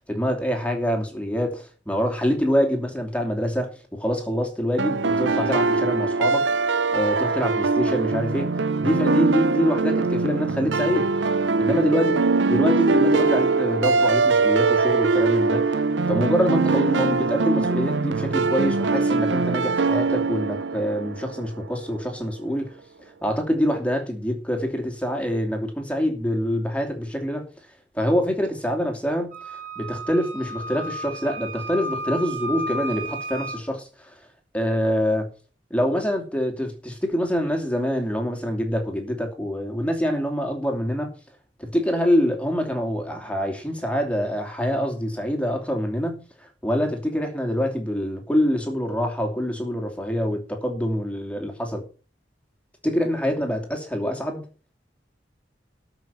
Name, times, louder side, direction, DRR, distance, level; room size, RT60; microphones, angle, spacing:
voice 1, 0.1-6.4 6.9-8.5 8.8-11.1 11.6-12.2 12.5-15.8 16.1-22.7 23.2-27.5 27.9-29.4 29.8-34.1 34.5-35.3 35.7-41.1 41.6-46.2 46.6-51.8 52.8-54.4, equal, 5° left, 2.7 m, -25 dB
sound 1, 4.8-21.7, right 3 dB, 85° right, 0.7 m, -22 dB
Wind instrument woodwind instrument, 29.3-33.6, right 1 dB, 45° right, 3.8 m, -33 dB
13.0 x 5.9 x 7.3 m
head